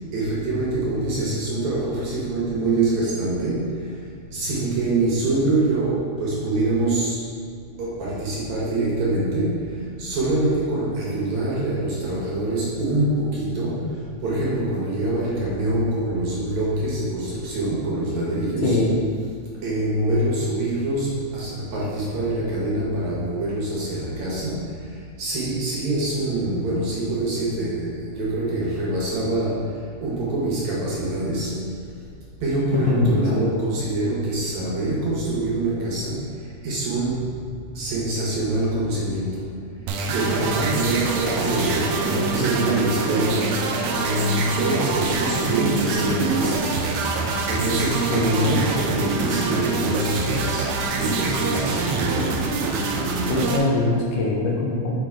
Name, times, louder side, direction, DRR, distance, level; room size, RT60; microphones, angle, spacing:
voice 1, 0.1-4.0 4.3-7.3 7.8-18.8 19.6-29.7 30.0-31.6 32.4-36.2 36.6-37.3 37.7-39.5 40.1-46.7 47.5-50.7 51.0-52.4, right 2 dB, 60° right, -6 dB, 2.4 m, -25 dB
voice 2, 18.6-19.0 32.7-33.5 48.1-48.7 53.2-54.9, left 3 dB, 75° left, -2 dB, 2.2 m, -22 dB
sound 1, 39.9-53.6, right 3 dB, 80° right, 1.7 m, -25 dB
6.6 x 3.9 x 4.7 m, 2.2 s
omnidirectional pair, 3.9 m